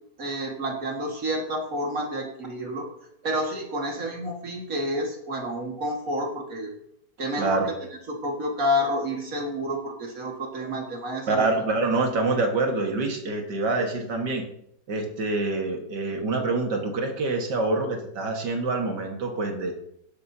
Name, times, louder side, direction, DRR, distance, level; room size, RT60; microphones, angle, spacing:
voice 1, 0.2-2.9 3.2-6.7 7.2-7.6 8.1-11.5, equal, 55° right, 1 dB, 2.3 m, -29 dB
voice 2, 7.4-7.7 11.3-14.5 14.9-19.7, right 3 dB, 85° right, 3 dB, 2.3 m, -26 dB
17.5 x 10.5 x 2.8 m, 0.76 s
omnidirectional pair, 1.8 m